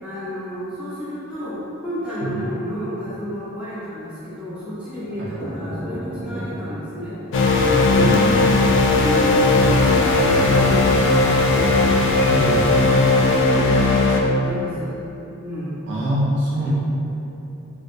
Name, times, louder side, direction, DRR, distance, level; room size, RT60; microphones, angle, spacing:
voice 1, 0.0-11.9 12.3-15.0 15.4-15.9, equal, 5° right, -13 dB, 0.7 m, -31 dB
sound 1, 5.0-12.8, equal, 25° left, 1.1 m, -32 dB
sound 2, 7.3-14.2, left 3 dB, 60° left, 0.3 m, -17 dB
voice 2, 7.9-8.3 12.3-12.6 15.9-16.7, right 1 dB, 60° right, -8 dB, 0.7 m, -24 dB
sound 3, 8.3-13.4, equal, 90° left, 1.3 m, -35 dB
3.4 x 2.4 x 2.5 m, 3.0 s
head